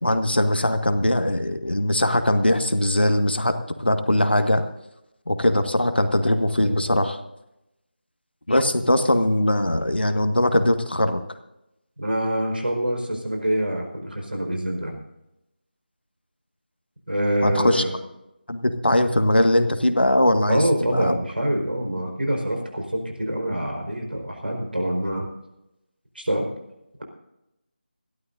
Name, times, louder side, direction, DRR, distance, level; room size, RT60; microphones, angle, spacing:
voice 1, 0.0-4.7 5.3-7.2 8.5-11.2 17.4-17.8 18.5-20.6 20.9-21.2, left 1 dB, 75° left, 7 dB, 1.7 m, -21 dB
voice 2, 12.0-14.9 17.1-18.0 20.5-25.3 26.1-26.5, equal, 65° right, 2 dB, 4.6 m, -25 dB
26.0 x 12.5 x 2.7 m, 0.89 s
figure-of-eight pair, 165°, 6 cm